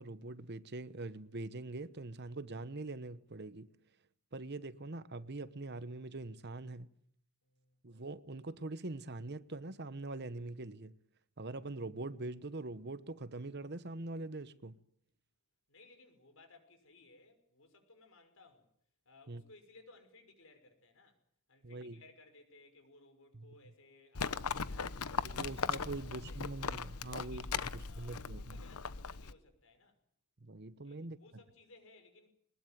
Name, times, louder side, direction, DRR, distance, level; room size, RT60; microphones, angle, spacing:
voice 1, 0.0-3.7 4.3-6.9 7.8-11.0 11.4-14.8 19.3-19.4 21.6-22.0 25.2-28.6 30.4-31.2, right 2 dB, 50° right, 1.0 m, -43 dB
voice 2, 7.4-7.8 15.7-18.7 19.0-21.2 21.5-26.8 27.2-30.0 30.8-32.3, left 3 dB, 65° left, 6.1 m, -61 dB
Livestock farm animals working animals, 24.1-29.3, left 5 dB, 85° left, 1.0 m, -38 dB
22.0 x 20.5 x 9.2 m
head